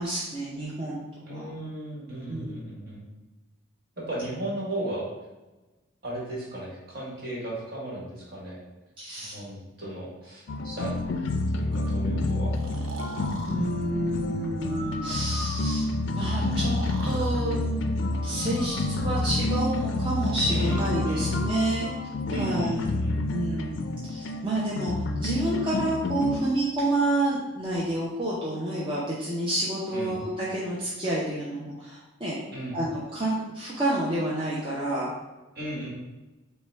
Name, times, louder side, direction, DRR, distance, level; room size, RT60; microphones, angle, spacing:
voice 1, 0.0-1.5 2.3-2.7 9.0-9.4 13.5-15.9 16.1-16.8 17.0-17.6 18.2-21.9 22.3-22.8 23.3-24.9 25.2-32.4 32.7-35.1, right 1 dB, 25° right, -7 dB, 0.6 m, -29 dB
voice 2, 1.3-3.0 4.0-5.1 6.0-8.6 9.2-11.1 11.5-12.5 20.5-21.3 22.3-23.2 29.9-30.2 32.5-32.8 35.5-35.9, right 1 dB, 50° right, -5 dB, 1.4 m, -35 dB
sound 1, 10.5-26.4, left 2 dB, 65° left, 0.4 m, -29 dB
Breathing, 12.5-13.6 14.6-15.9 16.4-17.3 18.3-19.5 20.2-21.0, right 2 dB, 75° right, 0.6 m, -41 dB
5.6 x 2.2 x 3.4 m, 1.1 s
head